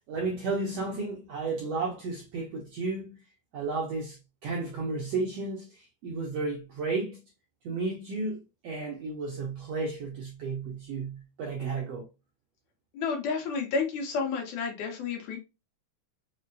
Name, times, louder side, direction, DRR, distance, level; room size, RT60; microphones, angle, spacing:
voice 1, 0.1-3.1 3.5-7.2 7.6-12.1, right 3 dB, 80° right, 1.4 m, -33 dB
voice 2, 12.9-15.4, left 5 dB, 75° left, 2.2 m, -30 dB
5.3 x 2.1 x 2.6 m
omnidirectional pair, 3.6 m